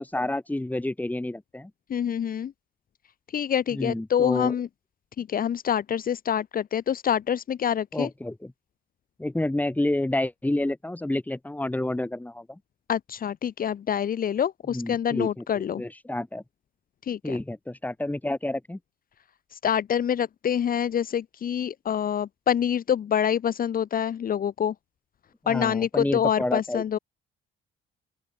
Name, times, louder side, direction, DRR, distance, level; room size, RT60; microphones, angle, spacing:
voice 1, 0.0-1.7 3.7-4.5 7.9-8.5 9.2-12.6 14.7-15.4 15.8-16.4 17.2-18.8 25.4-26.8, left 1 dB, 10° left, 7.0 m, -29 dB
voice 2, 1.9-2.5 3.3-4.7 5.2-8.1 12.9-15.8 17.0-17.4 19.5-24.7 25.5-27.0, left 9 dB, 45° left, 1.7 m, -26 dB
open air
cardioid pair, 130°, 21 cm